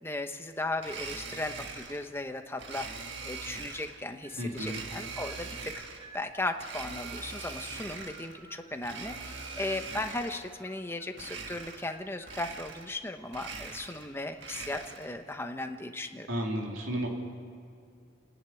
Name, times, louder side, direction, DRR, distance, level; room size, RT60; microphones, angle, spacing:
voice 1, 0.0-2.9 3.2-5.8 6.1-16.3, left 2 dB, 10° left, 6 dB, 0.9 m, -36 dB
Domestic sounds home sounds, 0.8-2.1 2.6-4.0 4.5-6.1 6.6-8.4 8.8-10.5 11.1-12.0 12.2-13.0 13.3-15.2, right 4 dB, 60° right, 1.6 m, -42 dB
sound 1, 4.2-4.8 5.1-9.0 9.2-10.2 10.6-12.4, right 2 dB, 25° right, 2.8 m, -53 dB
voice 2, 4.4-4.8 16.3-17.1, equal, 80° right, 0 dB, 3.2 m, -32 dB
29.5 x 10.0 x 9.7 m, 2.4 s
head